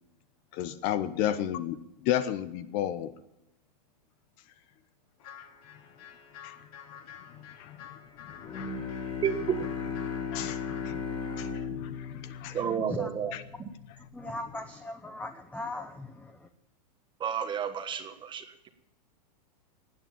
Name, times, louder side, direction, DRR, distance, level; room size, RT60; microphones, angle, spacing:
voice 1, 0.5-3.1 6.4-6.5 7.6-7.8 8.5-8.7 10.3-12.6 13.3-13.4, left 11 dB, 45° left, 1.1 m, -33 dB
sound 1, 5.2-11.0, left 8 dB, 60° left, 3.0 m, -49 dB
Bowed string instrument, 8.3-13.7, left 5 dB, 25° left, 4.7 m, -36 dB
voice 2, 9.2-9.6 12.5-13.3 13.6-13.7 17.2-18.7, right 8 dB, 20° right, 1.5 m, -32 dB
voice 3, 12.9-13.3 14.1-16.5, left 2 dB, 5° left, 0.9 m, -39 dB
18.5 x 9.5 x 7.2 m
hypercardioid pair, 125°, 21 cm